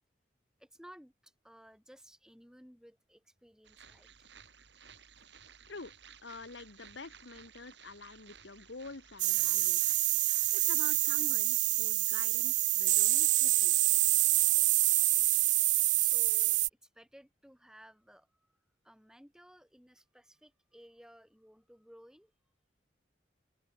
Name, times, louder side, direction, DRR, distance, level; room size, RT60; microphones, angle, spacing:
voice 1, 0.6-4.3 16.0-18.6 18.8-22.3, equal, 5° right, 5.7 m, -57 dB
sound 1, 3.6-11.3, right 7 dB, 75° right, 3.3 m, -57 dB
voice 2, 6.2-10.0 10.5-13.7, left 3 dB, 85° left, 1.4 m, -47 dB
sound 2, 9.2-16.7, right 17 dB, 45° right, 0.4 m, -27 dB
head